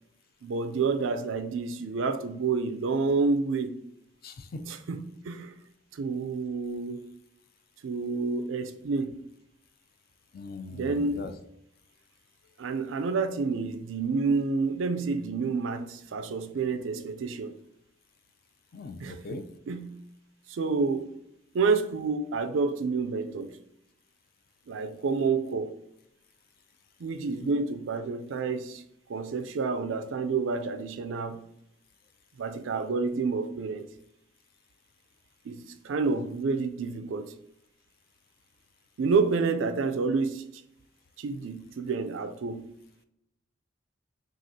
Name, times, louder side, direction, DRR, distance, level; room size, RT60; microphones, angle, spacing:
voice 1, 0.4-3.8 4.7-5.5 5.9-7.1 7.8-9.2 10.7-11.3 12.6-17.5 19.0-19.4 19.7-20.0 20.5-21.1 21.5-23.6 24.7-25.7 27.0-28.8 29.1-31.4 32.4-33.9 35.4-37.3 39.0-40.4 41.2-42.7, right 4 dB, 80° right, 0.4 m, -29 dB
voice 2, 4.2-4.6 10.3-11.3 18.7-19.4, left 2 dB, 50° left, 0.4 m, -40 dB
6.0 x 2.4 x 2.7 m
head